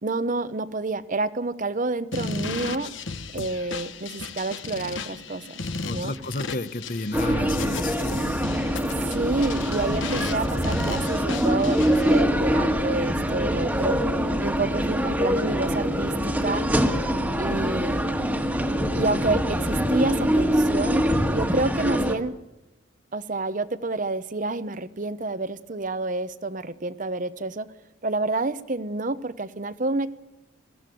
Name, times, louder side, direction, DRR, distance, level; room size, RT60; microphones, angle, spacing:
voice 1, 0.0-2.9 3.3-5.6 5.9-6.2 8.9-14.0 14.4-16.6 17.4-18.1 19.0-21.0 21.3-22.3 23.1-27.7 28.0-30.1, right 3 dB, 40° right, 13 dB, 0.8 m, -28 dB
sound 1, 2.1-12.2, left 4 dB, 65° left, 1.1 m, -35 dB
voice 2, 5.9-8.0, left 2 dB, 45° left, 12 dB, 1.0 m, -31 dB
sound 2, 7.1-22.1, equal, 10° right, 1.6 m, -24 dB
22.0 x 15.0 x 9.3 m, 0.98 s
head